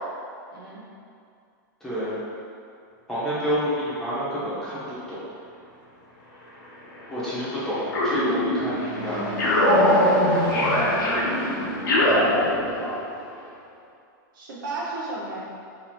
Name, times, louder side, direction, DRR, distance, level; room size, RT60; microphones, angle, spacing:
voice 1, 0.5-0.8 11.0-11.5 11.9-13.0 14.3-15.4, right 2 dB, 75° right, -6 dB, 1.1 m, -35 dB
voice 2, 1.8-2.2 3.1-5.2 7.1-9.2, equal, 5° left, -12 dB, 0.8 m, -28 dB
Fixed-wing aircraft airplane, 6.2-13.6, left 1 dB, 40° left, 0.9 m, -32 dB
sound 1, 7.9-8.9 9.4-13.0, left 1 dB, 80° left, 1.0 m, -22 dB
2.9 x 2.7 x 4.4 m, 2.4 s
supercardioid pair, 165°, 11 cm